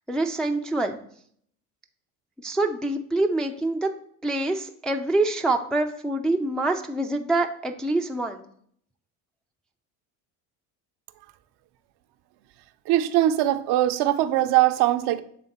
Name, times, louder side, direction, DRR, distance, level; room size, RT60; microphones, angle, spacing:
voice 1, 0.1-1.0 2.4-3.9 4.2-8.4, right 2 dB, ahead, 3 dB, 0.4 m, -25 dB
voice 2, 12.9-15.2, right 13 dB, 60° right, 9 dB, 0.6 m, -21 dB
7.7 x 3.5 x 4.1 m, 0.64 s
hypercardioid pair, 70°, 46 cm